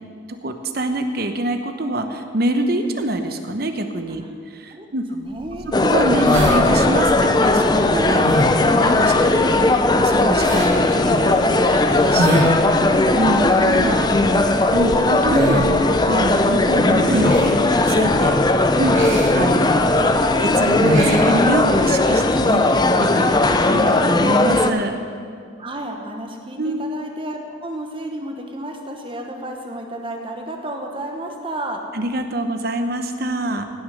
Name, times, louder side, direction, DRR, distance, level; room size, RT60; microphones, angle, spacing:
voice 1, 0.4-4.2 4.5-5.0 5.8-9.4 9.9-12.4 12.7-12.8 13.1-18.4 18.8-23.3 23.7-25.0 26.6-26.8 31.9-33.7, right 1 dB, 50° right, 7 dB, 0.9 m, -25 dB
voice 2, 5.1-5.7 9.3-9.8 12.9-13.4 23.2-23.6 25.6-31.8, right 1 dB, 25° right, 2 dB, 1.1 m, -33 dB
sound 1, 5.4-22.0, equal, 85° right, 2.5 m, -27 dB
sound 2, 5.7-24.7, left 2 dB, 20° left, 0.5 m, -17 dB
17.0 x 6.3 x 6.4 m, 2.3 s
head